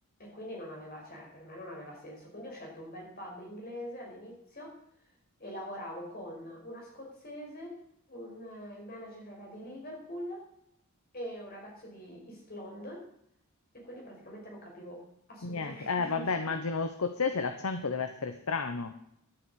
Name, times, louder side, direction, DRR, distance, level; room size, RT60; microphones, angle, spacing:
voice 1, 0.2-4.8 5.4-7.8 8.1-10.5 11.1-13.1 13.7-15.0 15.3-16.6, equal, 45° left, -1 dB, 5.3 m, -44 dB
voice 2, 15.4-18.9, left 4 dB, 90° left, 8 dB, 0.9 m, -32 dB
12.0 x 8.0 x 8.4 m, 0.73 s
head